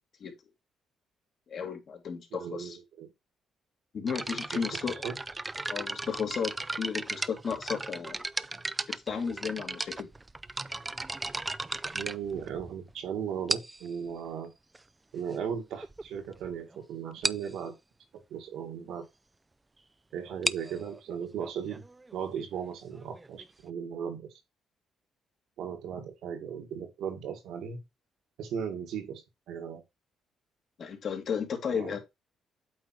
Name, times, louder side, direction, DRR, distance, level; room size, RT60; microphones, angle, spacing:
voice 1, 1.5-2.8 3.9-4.9 5.7-8.2 8.9-10.1 30.8-32.0, left 6 dB, 55° left, 2.1 m, -34 dB
voice 2, 2.3-3.1 5.0-5.2 11.9-14.5 15.1-17.7 18.1-19.1 20.1-21.8 22.1-24.3 25.6-27.8 28.4-29.8 31.7-32.0, right 7 dB, 85° right, 1.9 m, -37 dB
sound 1, 4.1-12.9 13.5-13.9 14.7-14.8 15.5-15.6 15.8-16.0 16.4-16.5 16.7-16.8 17.2-17.5 20.2-23.7, right 2 dB, 20° right, 0.4 m, -36 dB
8.6 x 3.4 x 4.5 m
cardioid pair, 90°, 0 cm